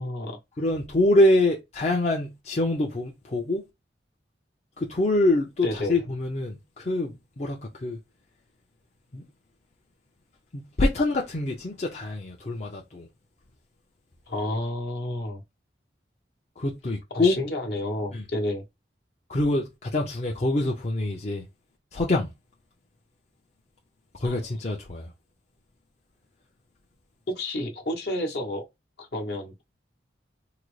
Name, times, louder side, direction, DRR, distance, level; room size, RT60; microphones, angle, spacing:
voice 1, 0.0-0.4 5.6-6.0 14.3-15.4 17.1-18.6 24.2-24.4 27.3-28.6 29.0-29.5, left 1 dB, 60° left, 0.9 m, -30 dB
voice 2, 0.6-3.6 4.8-8.0 9.1-9.2 10.5-13.1 16.6-17.4 18.1-18.2 19.3-21.4 21.9-22.3 24.1-25.1, left 1 dB, 40° left, 0.5 m, -25 dB
3.8 x 2.0 x 3.1 m
head